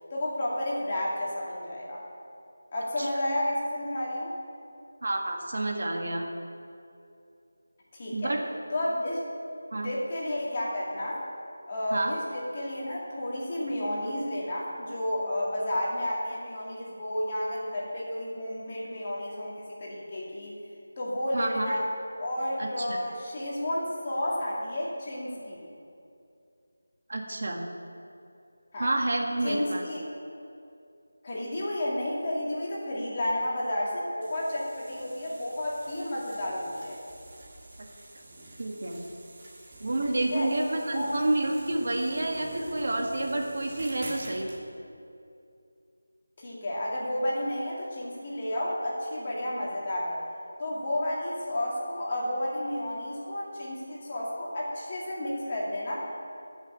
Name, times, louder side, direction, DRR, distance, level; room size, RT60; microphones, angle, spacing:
voice 1, 0.1-2.0 2.7-4.3 7.9-8.3 8.7-9.2 9.8-11.2 11.7-20.6 21.0-21.9 22.2-25.6 28.7-29.0 29.4-30.0 31.2-37.0 40.1-40.5 40.9-41.1 46.4-50.2 50.6-56.0, left 1 dB, 25° left, -5 dB, 2.4 m, -31 dB
voice 2, 5.0-6.3 8.1-8.4 9.7-9.9 11.9-12.1 21.3-21.8 22.6-23.0 27.1-27.6 28.8-29.8 38.6-39.0 39.8-44.5, right 2 dB, 50° right, 1 dB, 1.7 m, -29 dB
sound 1, 34.2-44.6, right 1 dB, 20° right, 1.9 m, -47 dB
13.0 x 6.7 x 8.9 m, 2.6 s
figure-of-eight pair, 175°, 0 cm